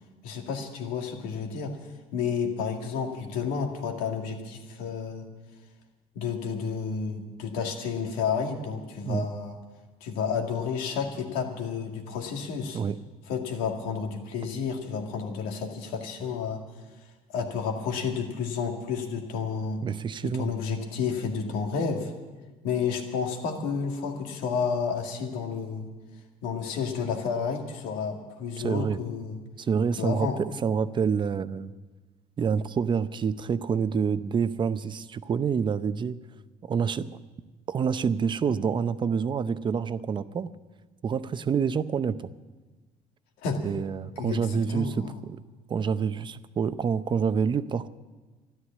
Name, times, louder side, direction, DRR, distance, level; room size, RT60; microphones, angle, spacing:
voice 1, 0.2-1.8 2.1-5.3 6.2-9.6 10.0-12.8 13.3-16.6 17.3-19.8 20.2-22.1 22.6-25.9 26.4-29.4 30.0-30.4 43.4-43.6 44.2-45.2, left 6 dB, 90° left, 3 dB, 2.1 m, -31 dB
voice 2, 19.8-20.5 28.6-29.0 29.6-31.7 32.4-36.2 36.6-37.1 37.7-40.5 41.0-42.3 43.6-45.4 45.7-47.9, right 6 dB, 35° right, 13 dB, 0.7 m, -27 dB
13.0 x 11.5 x 8.4 m, 1.2 s
cardioid pair, 110°, 14 cm